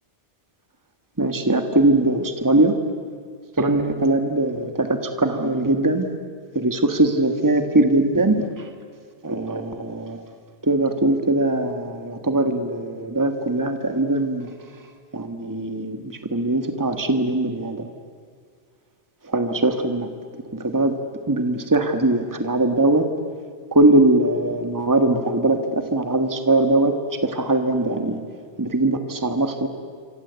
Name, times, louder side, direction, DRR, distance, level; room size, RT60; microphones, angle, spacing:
voice 1, 1.2-2.8 3.6-6.1 6.5-8.6 9.2-10.2 10.6-14.5 15.1-17.9 19.2-20.1 20.5-21.0 21.3-23.1 23.7-28.2 28.6-29.7, right 2 dB, 15° right, 6 dB, 1.6 m, -21 dB
27.5 x 25.0 x 8.2 m, 2.1 s
omnidirectional pair, 1.2 m